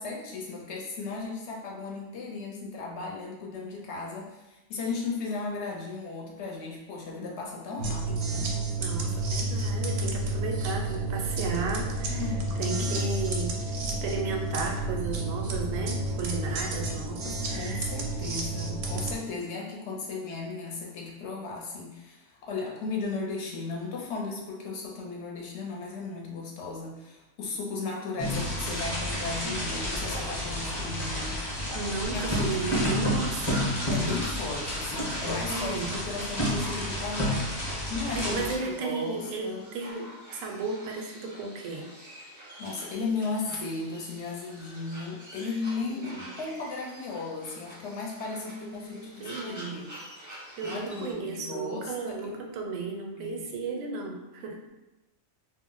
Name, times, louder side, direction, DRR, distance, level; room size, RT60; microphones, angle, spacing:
voice 1, 0.0-8.5 12.1-13.0 17.2-31.4 32.1-33.0 33.9-35.8 36.0-37.4 37.9-39.6 42.6-49.9 50.6-52.3 53.2-53.5, left 4 dB, 65° left, -2 dB, 0.8 m, -36 dB
sound 1, 7.8-19.2, right 2 dB, 65° right, 0.7 m, -30 dB
voice 2, 8.8-12.3 12.6-13.7 14.0-17.9 29.4-29.6 31.7-33.7 35.5-35.9 38.1-41.9 45.8-46.3 48.3-49.8 50.2-54.6, right 4 dB, 90° right, 1 dB, 1.0 m, -34 dB
sound 2, 28.2-38.5, equal, 25° left, 0.7 m, -30 dB
sound 3, 32.0-51.1, equal, 20° right, 0.4 m, -46 dB
2.4 x 2.0 x 3.7 m, 1.0 s
omnidirectional pair, 1.3 m